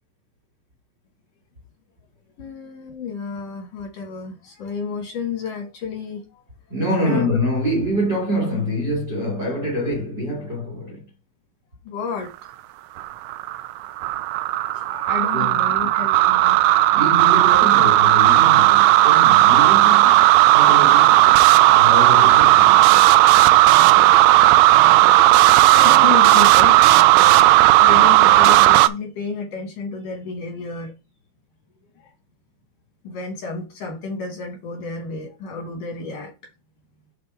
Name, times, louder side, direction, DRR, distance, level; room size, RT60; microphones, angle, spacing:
voice 1, 2.4-6.4 7.0-7.4 11.9-12.3 14.7-16.9 25.7-26.8 27.8-30.9 32.0-32.1 33.0-36.5, left 5 dB, 75° left, 1.9 m, -31 dB
voice 2, 6.7-11.1 15.3-15.8 16.9-20.3 20.5-23.1 23.9-24.2, equal, 60° right, 1.0 m, -26 dB
sound 1, 13.0-28.9, right 15 dB, 90° right, 2.6 m, -13 dB
8.7 x 3.7 x 4.7 m
omnidirectional pair, 5.8 m